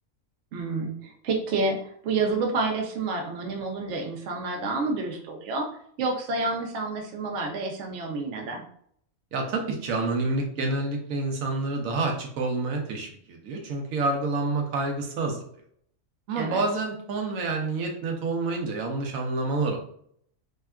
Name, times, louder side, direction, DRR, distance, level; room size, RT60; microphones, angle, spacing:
voice 1, 0.5-5.7 6.0-8.6 16.4-16.6, right 3 dB, 65° right, 1 dB, 0.9 m, -29 dB
voice 2, 9.3-15.4 16.3-19.8, right 3 dB, 90° right, 2 dB, 1.0 m, -28 dB
3.5 x 2.2 x 2.3 m, 0.64 s
omnidirectional pair, 1.4 m